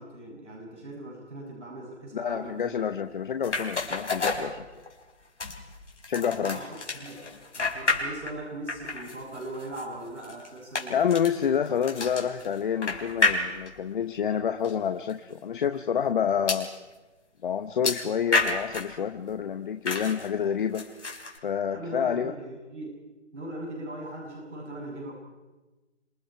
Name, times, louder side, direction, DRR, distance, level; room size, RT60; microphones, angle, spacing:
voice 1, 0.0-2.8 6.3-11.0 21.7-23.0 23.3-25.1, right 1 dB, 80° right, 0 dB, 7.2 m, -40 dB
voice 2, 2.1-4.6 6.1-6.6 10.9-16.7 17.4-20.8 21.4-22.3, left 8 dB, 45° left, 8 dB, 1.0 m, -28 dB
sound 1, 3.4-5.0 5.4-8.4 8.7-13.9 14.6-14.7 15.1-15.2 16.5-16.7 17.8-19.0 19.8-20.3 20.7-21.4, left 3 dB, 80° left, 4.2 m, -30 dB
29.0 x 26.0 x 4.5 m, 1.1 s
hypercardioid pair, 155°, 35 cm